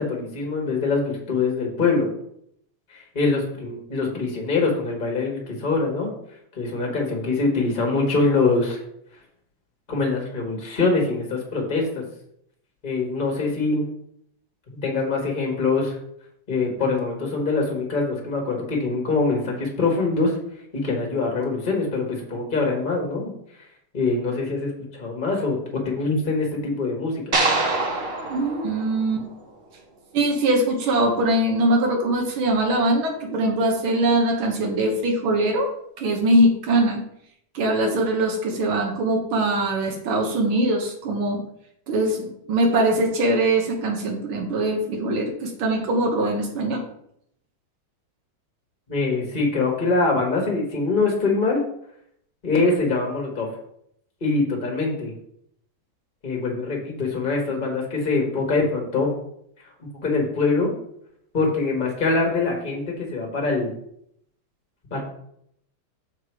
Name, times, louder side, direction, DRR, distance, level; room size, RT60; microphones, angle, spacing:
voice 1, 0.0-2.1 2.9-6.1 6.5-8.8 9.9-12.0 12.8-13.9 14.7-16.0 16.5-20.4 20.7-23.3 23.9-25.6 25.8-27.4 48.9-51.6 52.4-53.5 54.2-55.1 56.2-59.1 59.8-60.7 61.3-63.7 64.9-65.0, left 3 dB, 25° left, 0 dB, 1.6 m, -24 dB
sound 1, 27.3-29.7, right 2 dB, 40° right, 0.9 m, -25 dB
voice 2, 28.3-29.3 30.1-35.7 36.0-37.0 37.5-41.4 41.9-46.9, right 1 dB, 90° right, 1 dB, 2.0 m, -22 dB
6.8 x 4.4 x 4.7 m, 0.71 s
omnidirectional pair, 2.2 m